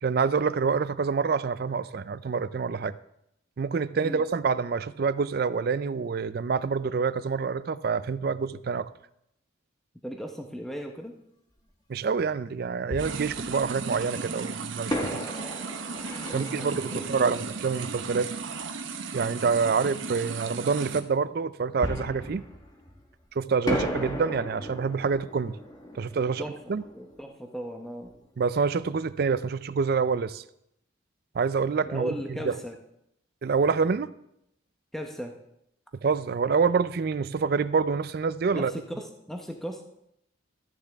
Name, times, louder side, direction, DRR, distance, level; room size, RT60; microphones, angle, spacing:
voice 1, 0.0-2.9 3.6-8.9 11.9-15.2 16.3-18.3 19.1-22.4 23.3-25.6 25.9-26.4 26.7-26.8 28.4-30.4 31.3-32.6 33.4-34.1 35.9-38.7, right 5 dB, 55° right, 0.4 m, -27 dB
voice 2, 10.0-11.1 16.3-17.3 26.4-28.1 31.8-32.7 34.9-35.3 38.5-39.9, equal, ahead, 0.8 m, -37 dB
Fireworks, 11.6-11.7 12.9-14.0 14.9-18.4 21.8-23.2 23.7-28.2 28.5-28.6 29.1-29.3, equal, 20° left, 1.4 m, -36 dB
sound 1, 13.0-21.0, right 5 dB, 85° right, 0.9 m, -36 dB
13.0 x 9.8 x 3.5 m
head